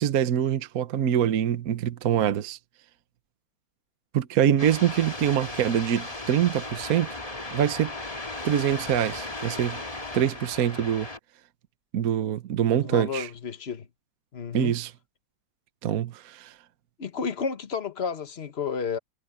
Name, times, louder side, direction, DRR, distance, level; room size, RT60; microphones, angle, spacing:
voice 1, 0.0-2.6 4.1-7.2 7.5-7.9 8.4-9.8 10.1-11.1 11.9-13.3 14.5-14.9 15.8-16.5, right 10 dB, 55° right, 1.2 m, -24 dB
sound 1, 4.6-11.2, left 2 dB, 20° left, 2.0 m, -36 dB
voice 2, 12.8-13.9 14.3-14.7 17.0-19.0, left 5 dB, 35° left, 1.4 m, -31 dB
omnidirectional pair, 2.1 m